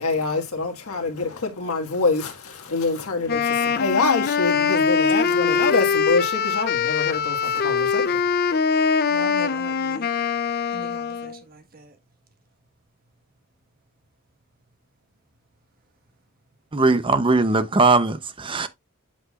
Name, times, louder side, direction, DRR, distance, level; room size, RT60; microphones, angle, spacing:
voice 1, 0.0-8.3, left 3 dB, 90° left, 1.7 m, -25 dB
Wind instrument woodwind instrument, 3.3-11.4, left 6 dB, 45° left, 0.6 m, -22 dB
voice 2, 5.2-5.7 9.1-10.1 10.7-11.9, right 2 dB, 45° right, 1.5 m, -41 dB
voice 3, 16.7-18.7, right 3 dB, 25° right, 0.7 m, -19 dB
8.2 x 5.9 x 2.4 m
head